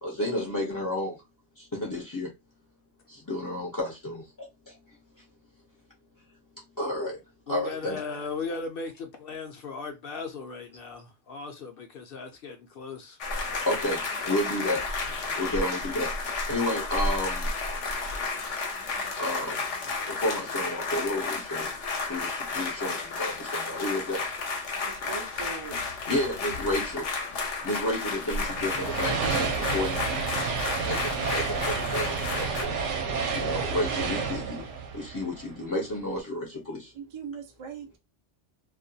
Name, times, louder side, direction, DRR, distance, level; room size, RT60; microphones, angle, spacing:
voice 1, 0.0-1.2 1.6-2.3 3.1-5.2 6.5-8.0 13.6-14.8 15.3-17.5 19.2-19.6 20.1-21.7 22.1-24.2 26.1-27.1 27.6-32.8 33.3-34.7 34.9-36.9, left 1 dB, 25° left, 0.4 m, -32 dB
voice 2, 7.5-8.9 9.2-13.2, left 4 dB, 60° left, 0.7 m, -37 dB
sound 1, 13.2-32.6, left 3 dB, 75° left, 1.0 m, -32 dB
voice 3, 24.8-25.8 36.9-38.0, right 6 dB, 50° right, 0.3 m, -40 dB
sound 2, 28.4-35.9, right 5 dB, 75° right, 0.9 m, -30 dB
2.4 x 2.2 x 2.6 m
omnidirectional pair, 1.2 m